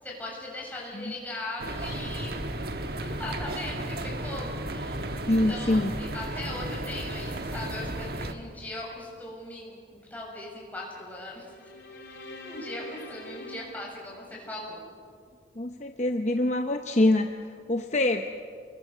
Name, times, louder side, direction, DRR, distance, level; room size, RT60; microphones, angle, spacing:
voice 1, 0.0-11.5 12.4-14.8, left 1 dB, 10° left, -3 dB, 7.0 m, -39 dB
sound 1, 1.6-8.3, right 1 dB, 60° right, 1.4 m, -34 dB
voice 2, 5.3-5.9 15.6-17.3 17.7-18.3, left 1 dB, 40° left, 5 dB, 0.9 m, -24 dB
sound 2, 11.4-14.8, left 2 dB, 65° left, 3.0 m, -45 dB
29.0 x 21.5 x 6.9 m, 2.2 s
head